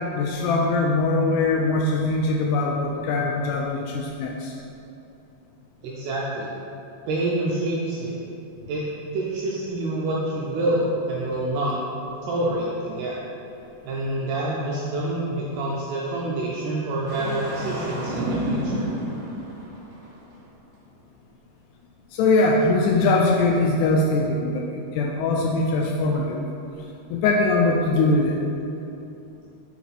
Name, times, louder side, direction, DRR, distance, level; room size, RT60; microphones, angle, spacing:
voice 1, 0.0-4.5 22.1-26.4 27.1-28.4, left 2 dB, 85° left, 0 dB, 2.4 m, -22 dB
voice 2, 5.8-6.5 7.1-8.2 8.7-8.9 9.1-11.8 12.2-13.2 13.9-18.9, right 1 dB, 80° right, -4 dB, 2.4 m, -27 dB
Engine starting, 17.1-20.1, right 1 dB, 65° right, 2.4 m, -29 dB
5.9 x 5.8 x 4.1 m, 2.8 s
omnidirectional pair, 5.2 m